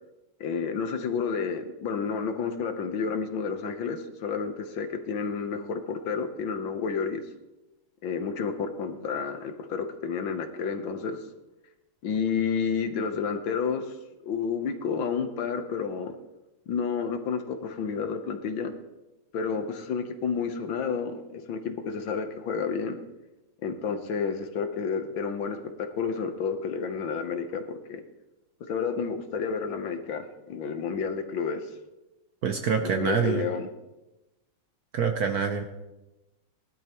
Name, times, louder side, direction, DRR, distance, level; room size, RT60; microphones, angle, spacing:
voice 1, 0.4-7.2 8.0-11.2 12.0-13.9 14.2-16.1 16.7-18.7 19.3-23.0 23.6-27.6 27.9-28.0 28.7-31.7 32.8-33.7, left 6 dB, 70° left, 7 dB, 1.7 m, -30 dB
voice 2, 32.4-33.4 34.9-35.6, right 6 dB, 60° right, 5 dB, 1.0 m, -26 dB
19.5 x 12.0 x 3.0 m, 1.0 s
omnidirectional pair, 2.3 m